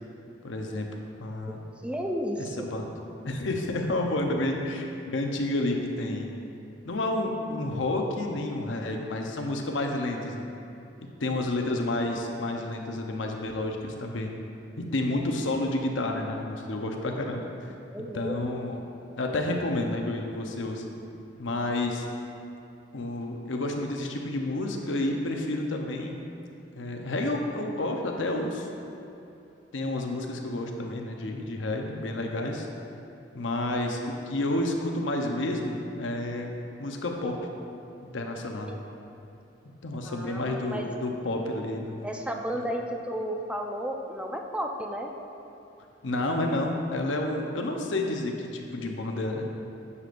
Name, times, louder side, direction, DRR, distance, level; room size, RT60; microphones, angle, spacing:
voice 1, 0.4-0.9 1.2-1.6 2.4-2.9 3.2-6.3 6.8-10.5 11.2-14.3 14.8-17.4 18.1-18.8 19.2-20.8 21.4-22.1 22.9-26.2 26.7-28.7 29.7-32.7 33.3-36.5 36.8-37.4 38.1-38.8 39.8-42.0 42.5-42.6 46.0-49.4, left 2 dB, 85° left, 2 dB, 0.8 m, -30 dB
voice 2, 1.8-2.7 17.9-18.4 38.7-38.8 40.0-40.9 42.0-45.1, equal, 5° right, 2 dB, 0.4 m, -33 dB
9.6 x 6.8 x 2.6 m, 2.8 s
head